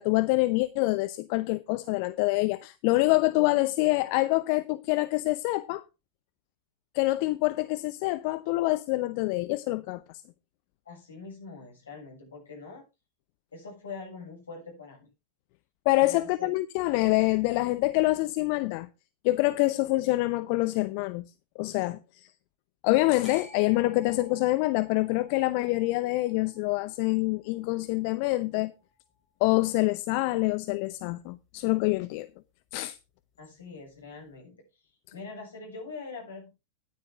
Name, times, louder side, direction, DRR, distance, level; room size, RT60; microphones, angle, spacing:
voice 1, 0.0-5.8 6.9-10.0 15.9-18.9 19.2-21.2 21.6-22.3 22.8-28.7 29.4-32.3 32.7-33.0, left 20 dB, 45° left, 0.7 m, -26 dB
voice 2, 10.9-12.8 13.5-15.1 16.0-16.5 33.4-34.5 35.1-36.5, left 4 dB, 70° left, 7.1 m, -43 dB
sound 1, 23.2-29.5, right 2 dB, 10° left, 6.1 m, -55 dB
13.5 x 9.7 x 3.6 m
figure-of-eight pair, 90°, 0 cm